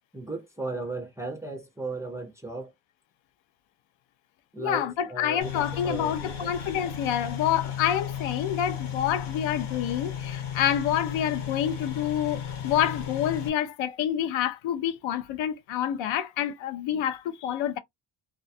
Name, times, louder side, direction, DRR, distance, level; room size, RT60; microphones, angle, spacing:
voice 1, 0.1-2.7 4.5-6.5, right 3 dB, 10° right, 0.3 m, -36 dB
voice 2, 4.6-17.8, left 10 dB, 85° left, 0.6 m, -28 dB
sound 1, 5.4-13.5, left 8 dB, 65° left, 1.0 m, -35 dB
2.3 x 2.2 x 2.5 m
cardioid pair, 145°, 45 cm